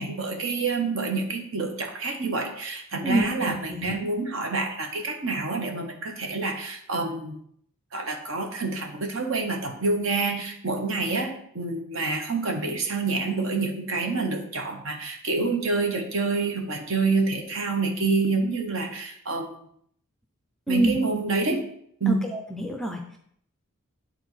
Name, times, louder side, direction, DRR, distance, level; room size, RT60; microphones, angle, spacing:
voice 1, 0.0-7.3 7.9-19.5 20.7-21.6 22.0-22.2, right 3 dB, 65° right, 3 dB, 1.0 m, -27 dB
voice 2, 3.0-3.9 20.7-21.0 22.1-23.2, right 1 dB, ahead, 3 dB, 0.4 m, -27 dB
8.7 x 3.9 x 3.1 m, 0.68 s
head